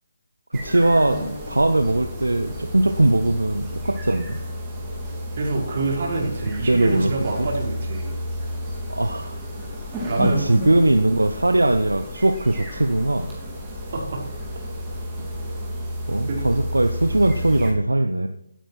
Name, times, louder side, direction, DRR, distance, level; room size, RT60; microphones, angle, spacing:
sound 1, 0.5-17.7, equal, 10° right, 3.0 m, -32 dB
voice 1, 0.5-4.4 6.7-7.1 7.4-7.5 8.9-9.4 10.2-13.3 16.1-18.3, right 2 dB, 80° right, 7 dB, 0.9 m, -20 dB
voice 2, 5.4-8.1 10.0-10.4 13.9-14.2 16.3-16.4, right 2 dB, 45° right, 0 dB, 4.1 m, -26 dB
18.5 x 9.1 x 4.5 m, 0.74 s
figure-of-eight pair, 145°, 0 cm